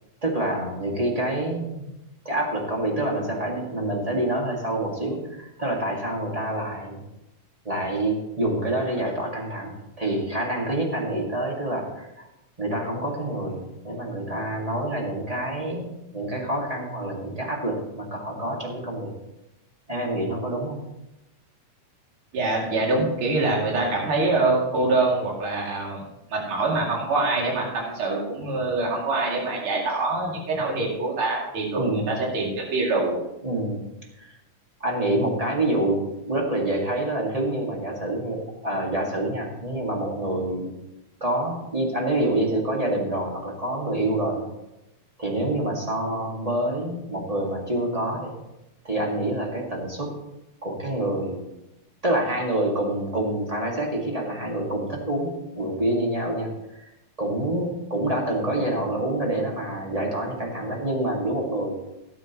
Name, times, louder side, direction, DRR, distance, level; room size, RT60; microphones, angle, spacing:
voice 1, 0.2-1.9 2.2-7.0 7.6-12.1 12.6-19.1 19.9-20.8 31.8-32.2 33.4-33.8 34.2-34.3 34.8-40.7 41.2-44.5 45.2-48.3 48.8-50.1 50.6-51.4 52.0-56.5 57.2-61.7, right 1 dB, 15° right, -1 dB, 1.3 m, -27 dB
voice 2, 22.3-26.0 26.3-33.2, right 2 dB, 45° right, -2 dB, 3.1 m, -24 dB
17.0 x 8.6 x 3.0 m, 0.91 s
omnidirectional pair, 3.5 m